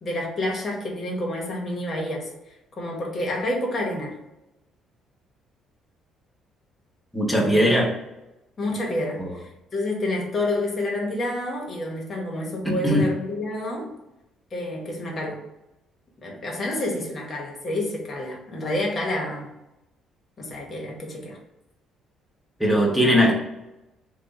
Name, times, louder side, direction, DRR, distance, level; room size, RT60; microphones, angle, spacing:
voice 1, 0.0-2.3 2.8-4.2 7.4-7.7 8.6-13.9 14.5-15.4 16.2-19.5 20.4-21.4, left 1 dB, 35° left, -1 dB, 1.1 m, -29 dB
voice 2, 7.1-7.9 9.2-9.3 12.6-13.1 22.6-23.3, equal, 5° left, -2 dB, 1.0 m, -19 dB
3.4 x 2.3 x 3.9 m, 0.95 s
cardioid pair, 120°, 0 cm